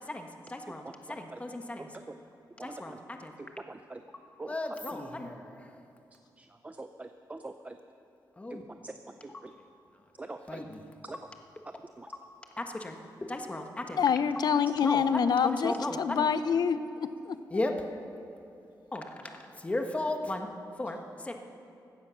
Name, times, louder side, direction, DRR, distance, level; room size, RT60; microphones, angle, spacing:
voice 1, 0.0-1.9 2.6-3.3 4.5-5.7 8.4-8.7 9.3-9.7 10.5-10.9 12.6-12.9 13.2-14.0 14.8-16.3 17.5-17.9 18.9-20.5 20.8-21.3, left 2 dB, 15° left, 4 dB, 1.3 m, -36 dB
voice 2, 3.7-4.0 4.4-4.5 6.6-7.7 8.5-8.6 8.8-8.9 10.2-10.6 11.1-11.2 12.0-12.1, right 2 dB, 20° right, 7 dB, 0.5 m, -42 dB
voice 3, 14.0-17.6, left 7 dB, 60° left, 12 dB, 0.7 m, -27 dB
16.0 x 13.5 x 6.2 m, 2.6 s
wide cardioid pair, 135°, 8 cm